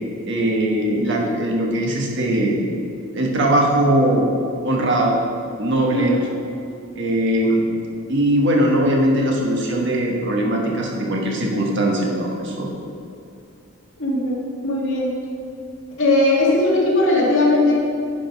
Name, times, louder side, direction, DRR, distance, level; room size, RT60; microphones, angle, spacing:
voice 1, 0.2-2.6 3.1-4.3 4.6-5.2 5.6-6.2 6.9-7.6 8.1-12.7, right 1 dB, 55° right, -1 dB, 1.4 m, -20 dB
voice 2, 5.9-6.2 14.0-15.1 16.0-17.8, left 2 dB, 60° left, -4 dB, 2.1 m, -18 dB
10.5 x 5.1 x 5.3 m, 2.5 s
head